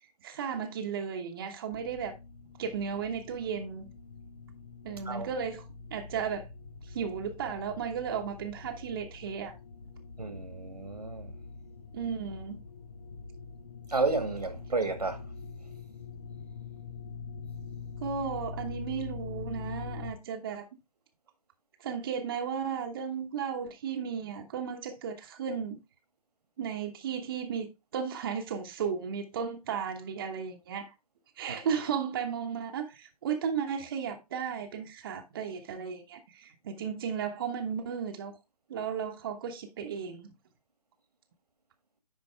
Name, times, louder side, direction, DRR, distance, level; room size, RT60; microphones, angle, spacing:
voice 1, 0.2-2.1 2.6-3.9 4.8-5.6 5.9-6.4 6.8-9.5 11.9-12.6 18.0-20.7 21.8-25.8 26.6-27.7 27.9-30.9 31.4-38.3 38.7-40.3, right 7 dB, 35° right, 1.1 m, -34 dB
sound 1, 1.7-20.1, left 4 dB, 55° left, 1.5 m, -44 dB
voice 2, 10.2-11.4 13.9-15.2 31.5-31.6, right 3 dB, 80° right, 1.9 m, -31 dB
10.0 x 4.5 x 3.4 m
figure-of-eight pair, 140°, 20 cm